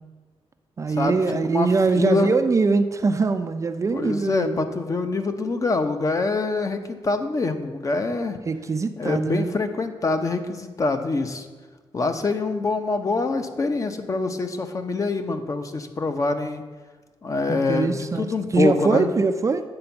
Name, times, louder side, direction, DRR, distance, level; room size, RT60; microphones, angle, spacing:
voice 1, 0.8-4.6 8.5-9.5 17.5-19.6, right 4 dB, 30° right, 8 dB, 0.4 m, -22 dB
voice 2, 1.9-2.3 3.9-8.4 9.0-11.5 11.9-16.6 17.2-19.1, left 3 dB, 35° left, 7 dB, 0.7 m, -25 dB
8.8 x 4.4 x 6.9 m, 1.4 s
wide cardioid pair, 125°, 10 cm